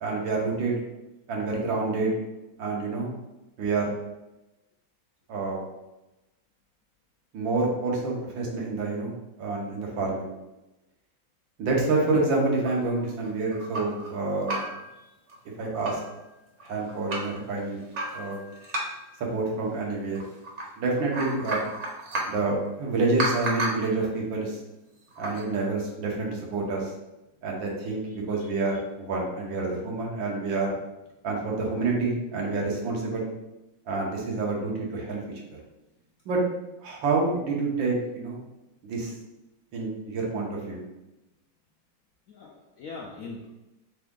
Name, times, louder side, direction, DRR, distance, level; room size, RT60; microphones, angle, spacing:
voice 1, 0.0-0.8 1.3-2.1 2.6-3.1 3.6-3.9 5.3-5.6 7.3-9.1 9.4-10.3 11.6-14.6 15.6-16.0 16.6-17.8 18.1-18.4 19.3-20.2 20.8-21.6 22.3-24.6 25.2-26.9 27.4-30.8 31.2-33.3 33.9-35.2 35.5-35.6 36.3-36.4 36.8-38.4 38.9-39.1 39.7-40.8, right 3 dB, 85° right, -1 dB, 1.8 m, -28 dB
sound 1, 12.6-14.1 14.4-14.9 15.3-15.4 15.6-16.1 16.6-17.3 17.9-19.2 20.1-20.7 21.0-22.4 23.2-23.9 25.1-25.4, right 2 dB, 50° right, 1.0 m, -32 dB
voice 2, 42.3-43.6, left 3 dB, 75° left, -1 dB, 0.7 m, -41 dB
4.1 x 3.5 x 3.7 m, 0.97 s
omnidirectional pair, 2.0 m